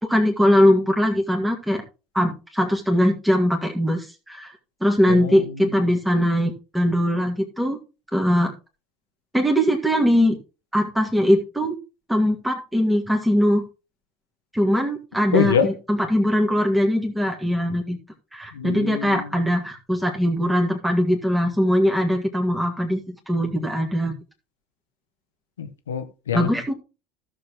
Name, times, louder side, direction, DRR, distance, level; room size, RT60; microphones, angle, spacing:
voice 1, 0.1-1.8 2.1-4.5 4.8-7.8 8.1-8.5 9.3-10.4 10.7-11.8 12.1-13.6 14.5-18.0 18.3-24.1 26.3-26.7, equal, 5° right, 2.0 m, -21 dB
voice 2, 5.1-5.8 15.3-15.7 18.5-19.4 25.6-26.5, left 7 dB, 80° left, 0.9 m, -25 dB
15.0 x 6.7 x 3.0 m
figure-of-eight pair, 70°, 0 cm